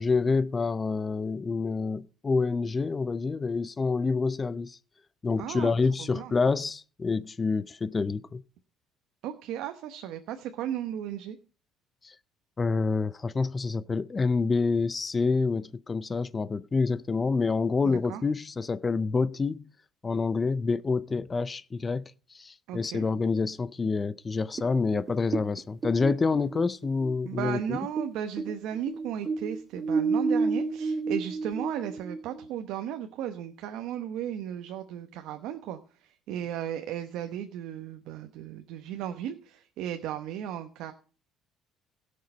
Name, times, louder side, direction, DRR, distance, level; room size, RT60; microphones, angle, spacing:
voice 1, 0.0-4.8 5.2-8.4 12.0-12.1 12.6-19.7 20.0-22.0 22.3-27.8, left 4 dB, 25° left, 0.5 m, -27 dB
voice 2, 5.4-6.3 9.2-11.4 17.8-18.2 22.7-23.0 27.2-40.9, right 10 dB, 75° right, 1.0 m, -35 dB
sound 1, 24.6-28.1 28.4-32.5, right 4 dB, 30° right, 0.9 m, -30 dB
16.5 x 6.6 x 5.2 m
cardioid pair, 125°, 0 cm